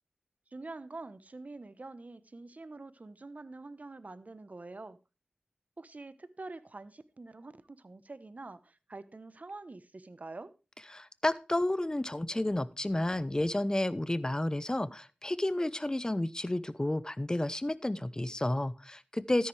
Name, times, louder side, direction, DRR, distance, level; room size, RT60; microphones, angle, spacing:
voice 1, 0.5-5.0 5.8-10.5, right 3 dB, 50° right, 1.0 m, -46 dB
voice 2, 10.9-19.5, left 1 dB, 20° left, 0.8 m, -31 dB
13.0 x 10.5 x 3.3 m
wide cardioid pair, 50°, 3 cm